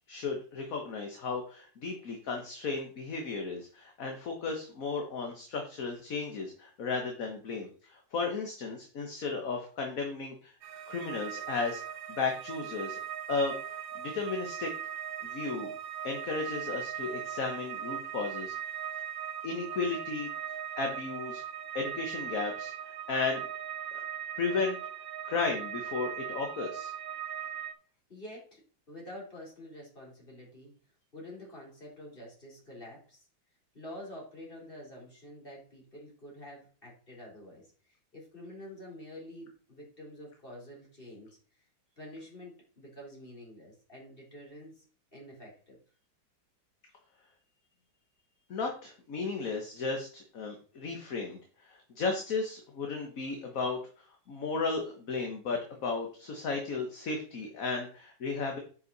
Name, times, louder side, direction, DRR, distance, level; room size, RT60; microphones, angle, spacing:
voice 1, 0.0-10.5 10.9-11.8 12.1-13.0 13.3-14.7 15.2-15.7 16.0-18.5 19.4-20.3 20.8-21.4 21.7-22.7 23.1-23.4 24.4-24.8 25.2-26.9 48.5-51.4 51.6-53.8 54.3-58.6, left 4 dB, 50° left, 2 dB, 1.6 m, -34 dB
sound 1, 10.6-27.7, right 9 dB, 90° right, 1.6 m, -39 dB
voice 2, 28.1-30.7 31.1-33.3 33.7-41.4 42.0-44.8 45.1-45.8, left 1 dB, 30° left, -3 dB, 4.1 m, -48 dB
10.0 x 5.8 x 4.1 m, 0.41 s
omnidirectional pair, 2.0 m